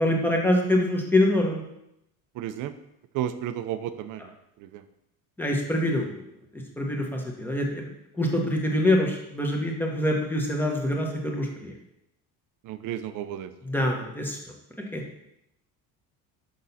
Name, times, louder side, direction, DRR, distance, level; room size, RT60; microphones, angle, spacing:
voice 1, 0.0-1.6 5.4-6.2 6.8-7.9 8.1-11.7 13.6-14.4 14.9-15.0, left 1 dB, 5° left, 0 dB, 1.0 m, -25 dB
voice 2, 2.4-2.7 3.1-4.2 12.6-13.5, right 11 dB, 50° right, 11 dB, 0.6 m, -32 dB
6.3 x 5.5 x 4.1 m, 0.82 s
cardioid pair, 145°, 40 cm